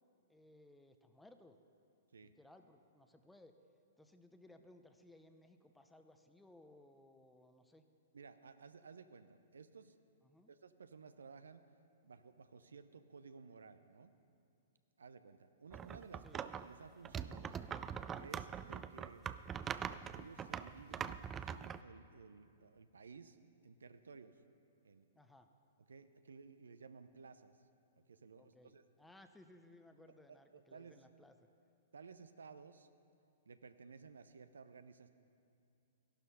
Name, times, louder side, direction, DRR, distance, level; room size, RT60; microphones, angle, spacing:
voice 1, 0.3-1.6 2.2-3.5 4.0-7.9 10.2-10.5 16.2-16.4 25.1-25.5 28.4-31.5, left 1 dB, 5° left, 7 dB, 0.8 m, -62 dB
voice 2, 8.1-9.9 10.5-11.7 12.0-14.1 15.0-17.6 18.2-19.3 20.1-21.2 21.5-24.3 24.8-25.1 25.9-27.5 28.1-28.8 30.3-31.0 31.9-32.9 33.5-35.1, right 5 dB, 75° right, 11 dB, 0.6 m, -56 dB
sound 1, 15.7-16.7 17.0-21.8, right 8 dB, 20° right, 0.4 m, -43 dB
14.0 x 11.5 x 5.6 m, 2.5 s
figure-of-eight pair, 110°, 0 cm